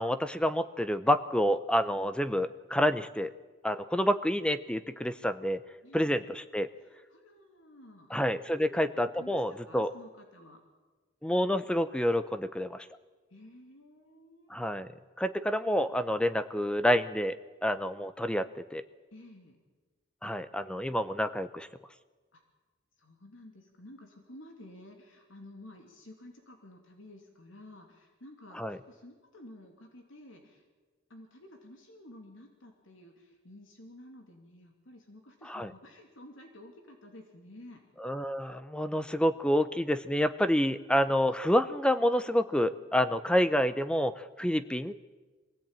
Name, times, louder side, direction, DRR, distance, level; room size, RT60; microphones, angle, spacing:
voice 1, 0.0-3.3 3.6-5.6 5.9-6.7 8.1-9.9 11.2-12.9 14.5-14.9 15.2-17.4 17.6-18.8 20.2-21.7 28.6-28.8 35.5-35.7 38.0-44.9, equal, 5° left, 12 dB, 0.7 m, -28 dB
voice 2, 5.8-6.2 6.8-8.1 8.5-8.7 9.1-10.6 13.3-14.7 19.1-19.6 22.3-22.4 23.0-30.6 31.1-37.9, left 1 dB, 75° left, 3 dB, 2.7 m, -52 dB
23.0 x 16.0 x 8.9 m, 1.3 s
head